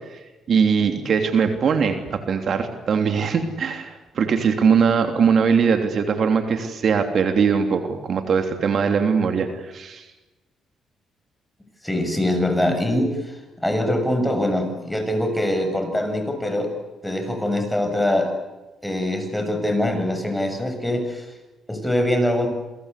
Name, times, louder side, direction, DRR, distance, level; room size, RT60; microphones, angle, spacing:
voice 1, 0.5-10.0, right 6 dB, 55° right, 6 dB, 3.1 m, -21 dB
voice 2, 11.8-16.7 17.0-18.4 18.8-21.3 21.7-22.5, left 1 dB, 5° left, 6 dB, 7.5 m, -23 dB
29.0 x 23.0 x 8.4 m, 1.1 s
cardioid pair, 90°, 0 cm